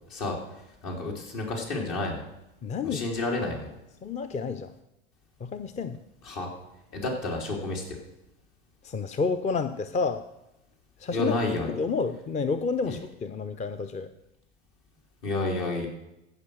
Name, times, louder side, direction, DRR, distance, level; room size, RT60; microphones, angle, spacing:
voice 1, 0.8-2.2 2.8-3.7 6.2-6.5 6.9-8.0 11.1-11.7 12.9-13.0 15.2-15.9, left 2 dB, 60° left, 0 dB, 3.6 m, -30 dB
voice 2, 2.6-3.0 4.0-4.7 5.4-6.0 8.8-10.2 11.0-11.4 11.7-14.1, left 4 dB, 25° left, 10 dB, 0.6 m, -29 dB
15.0 x 5.8 x 6.3 m, 0.89 s
hypercardioid pair, 85°, 31 cm